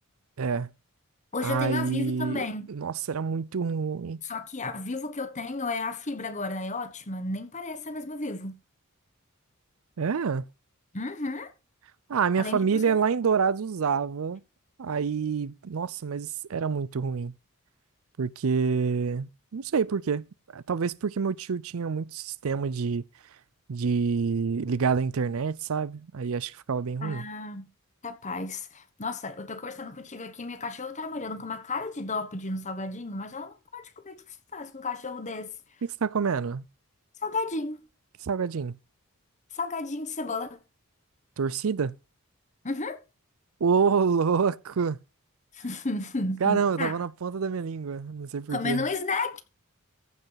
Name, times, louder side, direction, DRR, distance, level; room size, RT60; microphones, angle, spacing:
voice 1, 0.4-0.7 1.4-4.2 10.0-10.4 12.1-14.4 14.8-17.3 18.2-20.3 20.5-23.0 23.7-27.2 35.8-36.6 38.2-38.8 41.4-41.9 43.6-45.0 46.4-48.9, right 5 dB, 65° right, 0.5 m, -27 dB
voice 2, 1.3-2.7 4.2-8.6 10.9-11.5 12.4-13.0 27.0-27.7 28.0-34.2 34.5-35.5 37.2-37.8 39.5-40.6 42.6-43.0 45.5-46.9 48.5-49.4, left 3 dB, 30° left, 1.3 m, -33 dB
15.0 x 5.4 x 5.7 m
head